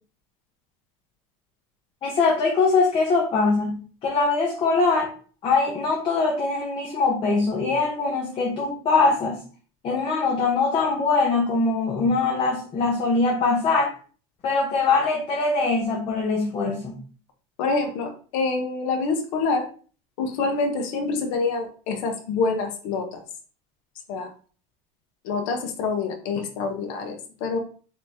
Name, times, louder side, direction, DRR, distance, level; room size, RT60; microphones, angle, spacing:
voice 1, 2.0-5.1 5.4-9.4 9.8-13.9 14.4-17.0, left 3 dB, 30° left, -1 dB, 0.9 m, -22 dB
voice 2, 17.6-19.7 20.2-23.2 24.1-24.3 25.2-27.6, left 4 dB, 70° left, 4 dB, 1.0 m, -26 dB
4.3 x 2.9 x 3.5 m, 0.40 s
supercardioid pair, 150°, 17 cm